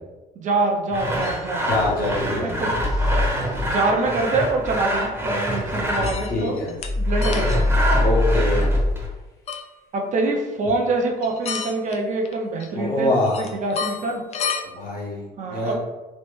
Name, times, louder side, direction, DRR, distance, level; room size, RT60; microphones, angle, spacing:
voice 1, 0.4-1.6 2.4-2.7 3.6-6.6 7.0-7.6 9.9-13.1 13.4-14.2 15.4-15.7, right 2 dB, 45° right, 1 dB, 0.5 m, -25 dB
Sawing, 0.9-6.3 7.1-9.1, equal, 15° right, 0.8 m, -26 dB
sound 1, 1.2-1.8 3.0-3.1 3.8-3.9 6.0-6.9 7.2-7.7 9.5-9.7 11.2-12.0 12.2-12.9 13.2-14.6, left 6 dB, 40° left, 0.4 m, -31 dB
voice 2, 1.7-2.7 6.3-6.7 8.0-8.6 12.7-13.4 14.6-15.7, left 1 dB, 55° left, -5 dB, 1.2 m, -24 dB
sound 2, 2.8-3.3 6.8-8.9, left 1 dB, 20° left, 0.7 m, -21 dB
3.1 x 2.1 x 3.1 m, 1.1 s
cardioid pair, 110°, 17 cm